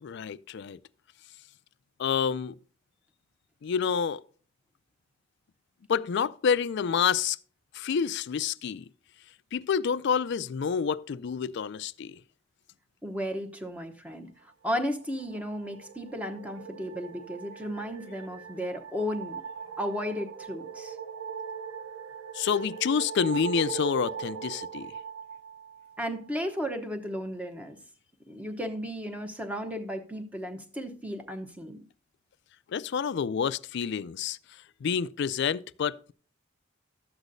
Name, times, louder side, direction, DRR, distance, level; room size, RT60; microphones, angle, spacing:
voice 1, 0.0-0.8 2.0-2.5 3.6-4.2 5.9-7.4 7.7-8.8 9.5-12.2 22.3-24.9 32.7-34.4 34.8-36.1, left 7 dB, 60° left, 0.4 m, -28 dB
voice 2, 13.0-19.4 19.8-21.0 26.0-27.8 28.3-31.8, equal, 5° right, 0.8 m, -34 dB
sound 1, 15.0-26.4, right 7 dB, 85° right, 0.6 m, -40 dB
12.5 x 8.1 x 2.6 m
head